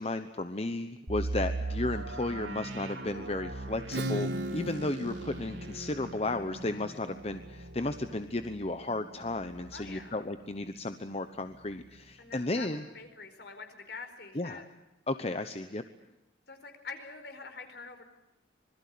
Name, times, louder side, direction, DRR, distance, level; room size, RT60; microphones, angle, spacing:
voice 1, 0.0-12.8 14.3-14.6 15.1-15.8, left 2 dB, 35° left, 9 dB, 0.9 m, -34 dB
sound 1, 1.1-10.8 11.1-11.2 11.8-12.0, right 2 dB, 80° right, 3.8 m, -40 dB
Acoustic guitar / Strum, 3.9-9.3, right 1 dB, 60° right, 1.6 m, -40 dB
voice 2, 9.7-10.2 12.2-12.7 12.9-14.8 16.5-18.0, left 4 dB, 60° left, 7 dB, 4.6 m, -45 dB
26.0 x 21.5 x 8.5 m, 0.95 s
head